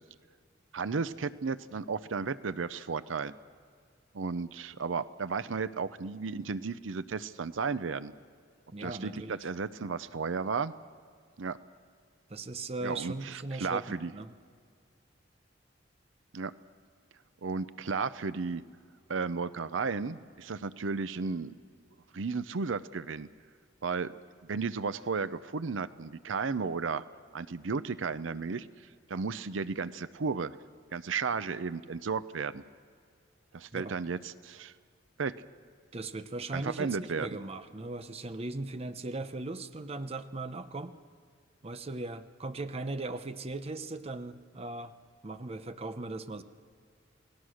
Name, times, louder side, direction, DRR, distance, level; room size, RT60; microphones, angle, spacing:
voice 1, 0.7-3.3 4.1-8.1 8.8-10.7 11.4-11.6 12.8-14.1 16.3-16.5 17.4-18.6 19.1-21.5 22.1-23.3 23.8-24.1 24.4-27.0 27.3-30.6 30.9-32.6 33.5-34.7 35.2-35.3 36.5-37.3, right 4 dB, 90° right, 15 dB, 0.6 m, -34 dB
voice 2, 8.7-9.4 12.3-14.3 33.7-33.9 35.9-41.0 41.6-44.9 45.2-46.4, right 2 dB, 30° right, 10 dB, 0.8 m, -38 dB
29.0 x 18.5 x 6.4 m, 2.1 s
head